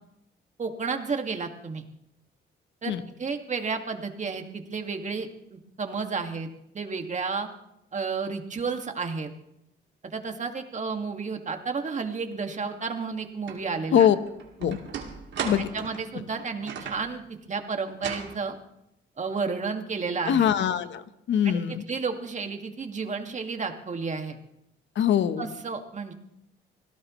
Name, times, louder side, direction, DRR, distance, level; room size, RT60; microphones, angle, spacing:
voice 1, 0.6-1.8 2.8-2.9 3.2-6.5 6.7-7.5 7.9-9.3 10.0-14.1 15.7-17.2 17.5-18.6 19.2-20.5 21.4-21.6 21.9-24.4 25.4-26.1, right 4 dB, 35° right, 5 dB, 2.1 m, -31 dB
sound 1, 13.5-13.6 14.1-17.1 17.9-18.4, right 6 dB, 65° right, 2.6 m, -36 dB
voice 2, 20.3-21.8 24.9-25.5, left 9 dB, 70° left, 11 dB, 1.2 m, -23 dB
26.0 x 16.5 x 3.2 m, 0.82 s
cardioid pair, 90°, 20 cm